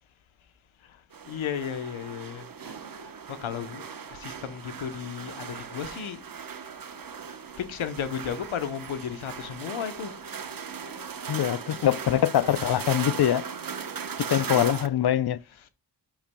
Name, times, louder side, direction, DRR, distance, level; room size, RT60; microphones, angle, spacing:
voice 1, 0.8-2.8 3.0-6.3 7.6-10.3 14.3-14.8 15.5-15.7, left 8 dB, 90° left, 0.9 m, -35 dB
sound 1, 1.1-14.9, right 6 dB, 45° right, 1.0 m, -38 dB
voice 2, 11.3-13.4 14.3-15.4, left 11 dB, 55° left, 0.6 m, -23 dB
10.5 x 6.6 x 2.2 m
cardioid pair, 50°, 47 cm